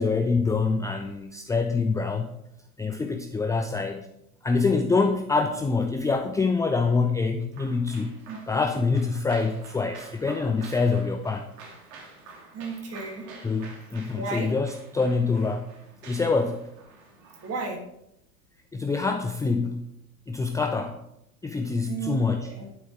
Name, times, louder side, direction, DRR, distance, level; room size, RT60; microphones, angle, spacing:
voice 1, 0.0-2.3 2.8-4.1 4.4-8.1 8.5-11.5 13.4-15.7 16.0-16.7 18.7-19.9 20.3-21.0 21.4-22.5, left 4 dB, 5° left, 6 dB, 0.5 m, -25 dB
sound 1, 7.5-17.8, right 3 dB, 55° right, 3.1 m, -49 dB
voice 2, 12.5-13.3 14.1-14.5 17.4-17.8 21.8-22.7, right 4 dB, 35° right, 1 dB, 3.1 m, -34 dB
11.5 x 9.4 x 3.6 m, 0.81 s
figure-of-eight pair, 85°, 44 cm